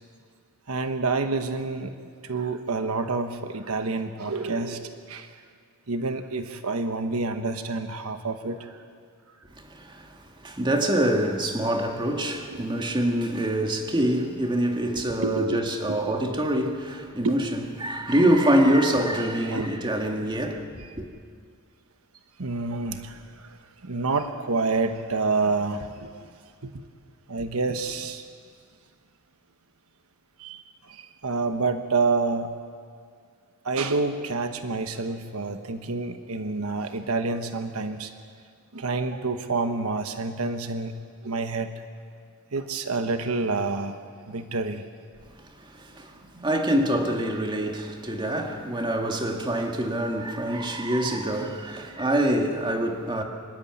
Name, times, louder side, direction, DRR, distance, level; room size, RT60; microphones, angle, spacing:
voice 1, 0.7-2.0 2.2-5.3 5.9-8.8 12.5-12.8 15.2-15.6 15.9-16.0 17.2-17.4 19.5-19.7 22.4-26.3 26.6-26.8 27.3-28.3 30.4-32.5 33.6-38.1 38.7-41.0 41.2-41.8 42.5-44.0 44.3-44.8 46.3-46.5, right 3 dB, 85° right, 1.2 m, -28 dB
voice 2, 9.6-20.7 21.0-21.1 45.6-53.2, right 1 dB, 20° right, 1.9 m, -25 dB
25.0 x 13.0 x 9.5 m
head